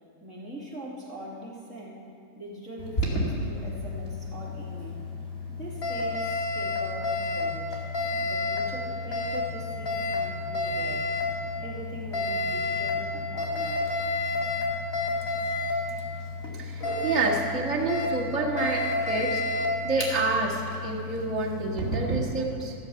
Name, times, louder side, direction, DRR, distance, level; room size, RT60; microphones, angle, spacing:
voice 1, 0.2-2.1 2.3-5.0 5.5-7.8 8.2-11.1 11.6-13.9, right 1 dB, 15° left, -5 dB, 2.6 m, -42 dB
Alarm, 2.8-22.2, left 2 dB, 30° left, 2.4 m, -30 dB
voice 2, 16.6-22.7, right 3 dB, 5° right, -6 dB, 1.5 m, -29 dB
14.5 x 7.6 x 7.1 m, 2.5 s
supercardioid pair, 180°, 0 cm